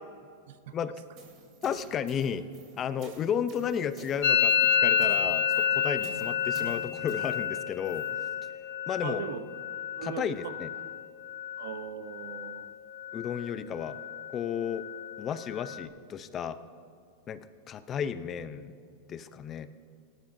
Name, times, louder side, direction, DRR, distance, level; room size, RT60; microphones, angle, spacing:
sound 1, 1.0-8.2, right 3 dB, 45° right, 3.1 m, -50 dB
voice 1, 1.6-2.4 2.8-8.1 8.9-9.2 10.0-10.7 13.1-14.0 14.3-14.9 15.2-16.6 17.3-18.7 19.1-19.7, left 8 dB, 30° left, 13 dB, 0.6 m, -33 dB
Musical instrument, 4.2-11.9 12.1-12.7 13.0-13.6 13.8-15.8, left 9 dB, 75° left, 0.6 m, -30 dB
voice 2, 9.0-9.4 10.0-10.5 11.6-12.7, right 8 dB, 70° right, 11 dB, 0.8 m, -39 dB
18.0 x 12.0 x 2.7 m, 2.2 s
hypercardioid pair, 110°, 0 cm